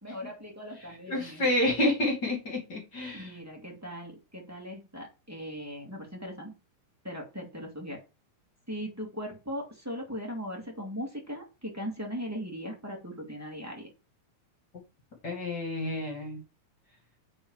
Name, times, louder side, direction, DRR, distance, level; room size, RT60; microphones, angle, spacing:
voice 1, 0.0-1.5 3.1-6.5 7.0-8.0 8.7-13.9, equal, 10° right, -1 dB, 0.8 m, -39 dB
voice 2, 1.1-3.3 15.2-16.4, left 1 dB, 35° left, 1 dB, 2.0 m, -29 dB
8.8 x 4.0 x 4.8 m, 0.29 s
omnidirectional pair, 4.5 m